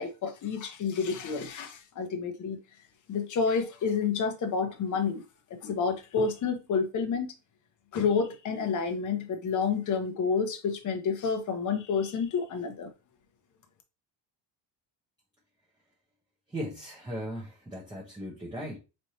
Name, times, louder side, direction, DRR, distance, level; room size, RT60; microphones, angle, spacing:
voice 1, 0.0-2.6 3.1-5.2 5.5-7.3 7.9-12.9, left 5 dB, 40° left, 0.9 m, -29 dB
voice 2, 16.5-18.8, equal, 10° right, 0.9 m, -37 dB
4.3 x 3.3 x 2.8 m
cardioid pair, 155°, 46 cm